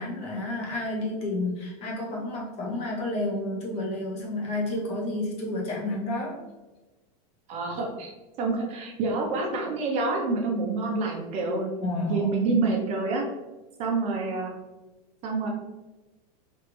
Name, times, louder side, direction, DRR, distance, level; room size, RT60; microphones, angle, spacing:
voice 1, 0.0-6.4 11.8-12.3, left 2 dB, 30° left, -2 dB, 0.8 m, -30 dB
voice 2, 7.5-8.1 8.4-11.7 12.1-13.3 13.8-14.5 15.2-15.5, right 3 dB, 35° right, 0 dB, 0.5 m, -27 dB
3.1 x 2.5 x 3.0 m, 1.1 s
supercardioid pair, 150°, 20 cm